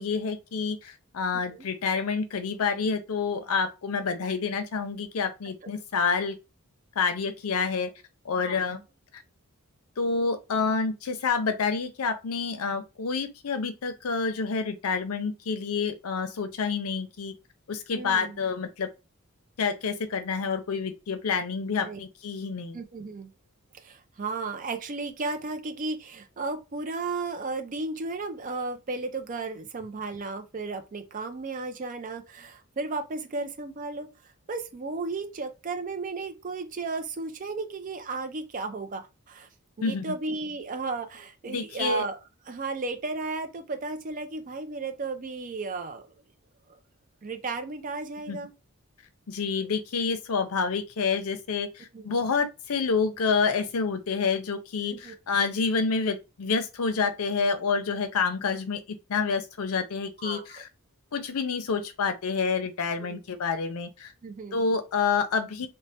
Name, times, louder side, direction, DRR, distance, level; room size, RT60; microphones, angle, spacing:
voice 1, 0.0-6.4 7.0-7.9 8.2-8.8 10.0-17.3 17.7-18.9 19.6-22.8 39.8-40.1 41.5-42.0 48.3-48.4 49.3-58.8 59.1-60.7 61.1-64.1 64.5-65.7, left 5 dB, 75° left, 0.5 m, -28 dB
voice 2, 8.4-8.8 17.9-18.4 21.8-22.0 22.7-23.3 23.7-34.1 34.5-39.0 39.3-39.5 39.8-42.2 42.5-46.0 46.7-46.8 47.2-48.5 51.9-52.1 54.9-55.2 60.2-60.6 63.0-63.2 64.2-64.6, right 3 dB, 35° right, 0.4 m, -34 dB
3.1 x 2.1 x 2.7 m
head